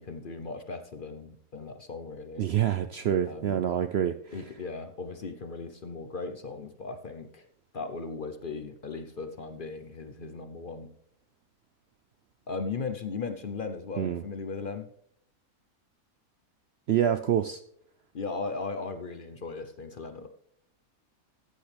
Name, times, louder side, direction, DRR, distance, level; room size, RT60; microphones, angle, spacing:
voice 1, 0.0-2.4 3.2-3.6 4.3-7.5 7.7-10.9 12.5-14.9 18.1-20.3, left 4 dB, 45° left, 8 dB, 0.8 m, -37 dB
voice 2, 2.4-4.3 14.0-14.2 16.9-17.6, right 10 dB, 65° right, 10 dB, 0.6 m, -26 dB
14.0 x 8.5 x 3.4 m, 0.72 s
omnidirectional pair, 1.5 m